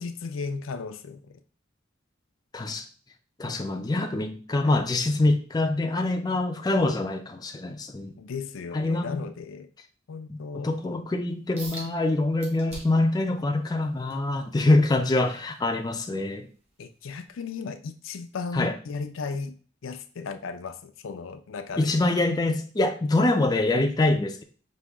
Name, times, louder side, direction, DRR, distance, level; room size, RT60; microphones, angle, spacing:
voice 1, 0.0-1.4 8.2-9.7 10.1-10.7 16.8-19.5 19.8-21.9, left 4 dB, 85° left, 8 dB, 0.5 m, -35 dB
voice 2, 2.5-2.8 3.4-8.2 8.7-9.2 10.3-10.4 10.6-16.5 18.5-18.7 21.8-24.4, left 2 dB, 20° left, 5 dB, 0.4 m, -25 dB
sound 1, 11.6-11.9 12.4-13.1 13.6-16.2 16.6-16.9 17.4-17.5, right 1 dB, 35° right, 1.6 m, -44 dB
5.1 x 2.7 x 3.4 m, 0.41 s
head